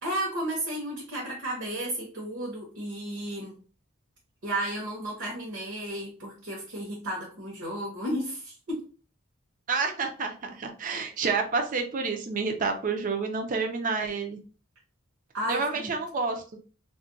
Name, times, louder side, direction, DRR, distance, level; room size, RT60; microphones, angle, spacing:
voice 1, 0.0-3.6 4.4-8.8 15.3-16.0, right 1 dB, 60° right, -3 dB, 0.9 m, -33 dB
voice 2, 9.7-14.4 15.5-16.4, right 4 dB, 40° right, 4 dB, 0.4 m, -29 dB
2.4 x 2.1 x 3.8 m, 0.38 s
head